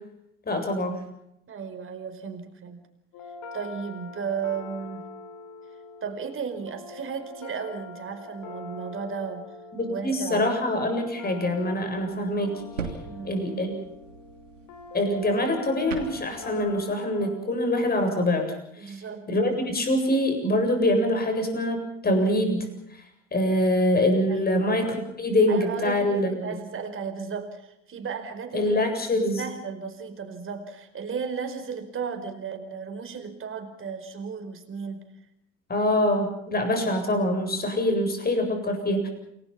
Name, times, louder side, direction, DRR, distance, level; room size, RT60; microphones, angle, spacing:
voice 1, 0.5-1.0 9.8-12.5 13.2-13.8 14.9-18.5 18.8-18.9 19.3-23.0 23.3-26.5 28.5-29.4 35.7-39.1, left 1 dB, 25° left, 5 dB, 7.8 m, -24 dB
voice 2, 1.5-2.8 3.5-5.0 6.0-9.5 9.9-10.5 13.0-13.4 18.8-19.3 24.3-24.7 25.5-28.8 29.1-35.0, right 6 dB, 35° right, 6 dB, 5.0 m, -34 dB
sound 1, 3.1-17.4, left 3 dB, 55° left, 4.8 m, -43 dB
sound 2, 11.9-16.8, right 5 dB, 85° right, 3.0 m, -41 dB
28.5 x 20.0 x 5.9 m, 0.78 s
figure-of-eight pair, 65°, 37 cm